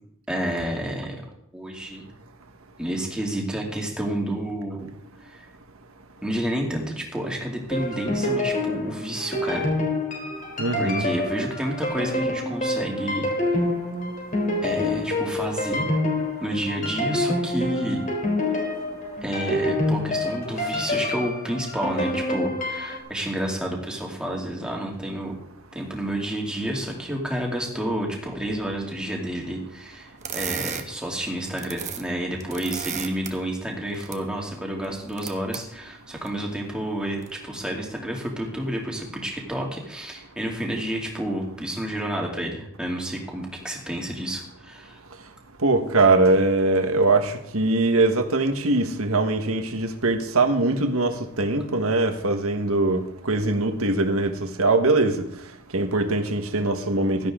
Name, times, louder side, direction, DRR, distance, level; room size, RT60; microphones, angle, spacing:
voice 1, 0.3-1.2 1.5-2.1 2.8-4.9 5.2-5.5 6.2-9.7 10.8-13.3 14.6-15.9 16.4-18.0 18.5-18.7 19.2-25.4 25.7-45.0, right 1 dB, 5° right, 2.7 m, -30 dB
sound 1, 7.7-23.0, left 1 dB, 35° left, 3.6 m, -27 dB
voice 2, 10.6-11.1 45.6-55.2 55.7-57.3, right 2 dB, 75° right, 1.6 m, -22 dB
sound 2, 30.2-30.8 31.4-32.0 32.3-33.3 33.9-34.2 34.8-35.6 36.3-36.4 37.1-37.3, right 8 dB, 30° right, 1.2 m, -33 dB
16.5 x 12.5 x 3.8 m
head